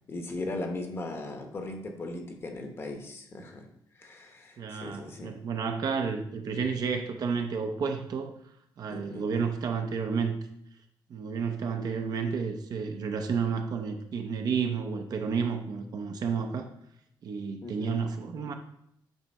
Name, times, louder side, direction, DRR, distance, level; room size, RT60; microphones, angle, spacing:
voice 1, 0.1-3.7 4.0-5.4 8.9-9.3 17.6-18.1, left 2 dB, 30° left, 4 dB, 1.0 m, -38 dB
voice 2, 4.6-8.3 8.8-10.4 11.1-16.7 17.2-18.5, right 5 dB, 50° right, 5 dB, 0.7 m, -31 dB
8.9 x 3.4 x 5.3 m, 0.74 s
cardioid pair, 165°, 9 cm